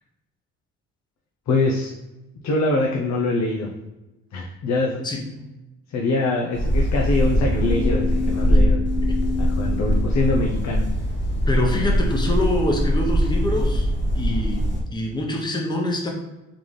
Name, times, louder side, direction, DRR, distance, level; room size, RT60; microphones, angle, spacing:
voice 1, 1.5-1.9 2.4-3.7 4.3-5.1 5.9-8.8 9.4-10.9, left 2 dB, 65° left, 0 dB, 0.7 m, -23 dB
sound 1, 6.5-14.8, equal, 35° left, 1.0 m, -22 dB
sound 2, 7.2-10.9, left 6 dB, 80° left, 1.1 m, -29 dB
voice 2, 8.2-8.6 9.1-9.2 11.5-13.9 14.1-16.1, left 1 dB, 15° left, 1 dB, 0.9 m, -25 dB
4.0 x 3.7 x 3.2 m, 1.0 s
cardioid pair, 90°, 30 cm